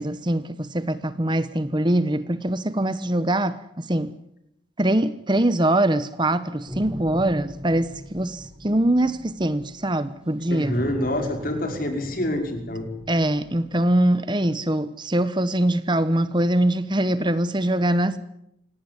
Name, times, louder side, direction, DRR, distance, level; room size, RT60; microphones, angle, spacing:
voice 1, 0.0-4.1 4.8-10.8 13.1-18.2, right 1 dB, 25° right, 1.1 m, -23 dB
sound 1, 6.7-10.2 10.7-14.1, equal, 5° right, 7.3 m, -39 dB
voice 2, 10.4-12.9, left 1 dB, 45° left, 5.3 m, -27 dB
26.5 x 18.0 x 9.9 m
head